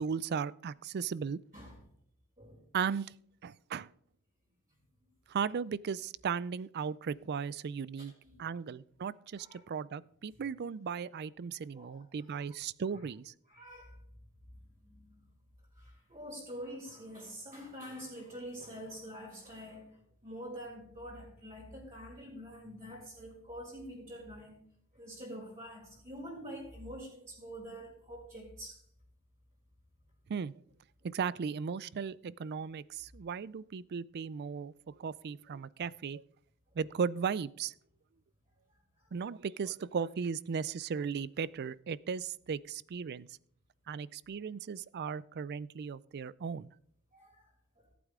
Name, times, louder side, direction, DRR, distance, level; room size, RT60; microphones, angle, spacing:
voice 1, 0.0-1.4 2.7-3.1 3.4-3.9 5.3-8.1 8.4-13.3 30.3-30.5 31.0-36.2 36.8-37.7 39.1-43.3 43.9-46.7, right 6 dB, 45° right, 21 dB, 0.4 m, -36 dB
voice 2, 2.4-2.8 8.0-8.5 9.3-9.6 10.3-10.4 11.7-12.4 12.9-13.1 13.5-14.0 14.8-15.2 15.7-24.6 24.9-28.9 36.7-36.8 38.7-39.1 47.1-47.9, equal, 30° right, -8 dB, 5.2 m, -47 dB
18.0 x 8.5 x 3.7 m, 0.63 s
head